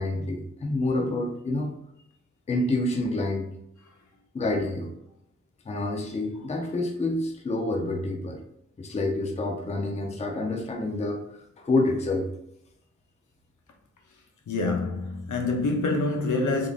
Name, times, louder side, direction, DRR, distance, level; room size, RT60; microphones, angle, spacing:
voice 1, 0.0-1.7 2.5-3.5 4.3-4.9 5.7-8.4 8.8-11.2 11.6-12.3, left 2 dB, 25° left, 0.5 m, -27 dB
voice 2, 14.5-16.7, left 3 dB, 80° left, 0.7 m, -26 dB
3.7 x 3.6 x 2.4 m
wide cardioid pair, 170°, 30 cm